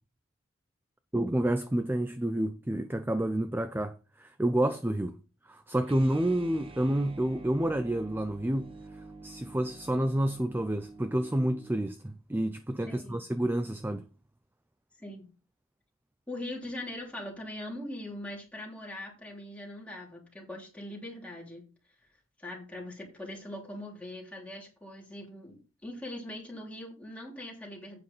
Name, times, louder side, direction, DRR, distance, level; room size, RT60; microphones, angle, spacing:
voice 1, 1.1-8.7 9.2-14.1, right 1 dB, 10° right, 0.4 m, -29 dB
sound 1, 5.8-11.9, right 3 dB, 25° right, 0.8 m, -48 dB
voice 2, 12.9-13.2 14.9-15.3 16.3-21.6 22.4-28.0, left 1 dB, 5° left, 3.3 m, -41 dB
8.8 x 5.6 x 5.4 m
head